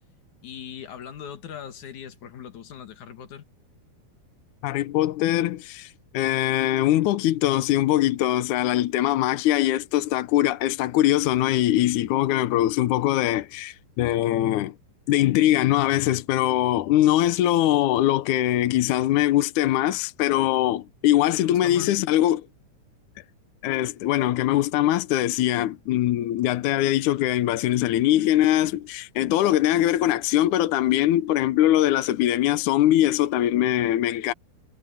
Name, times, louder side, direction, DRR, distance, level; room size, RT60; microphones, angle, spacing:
voice 1, 0.4-3.5 21.3-22.0, left 9 dB, 55° left, 3.0 m, -40 dB
voice 2, 4.6-14.7 15.1-22.5 23.6-34.3, left 13 dB, 80° left, 1.7 m, -22 dB
omnidirectional pair, 4.6 m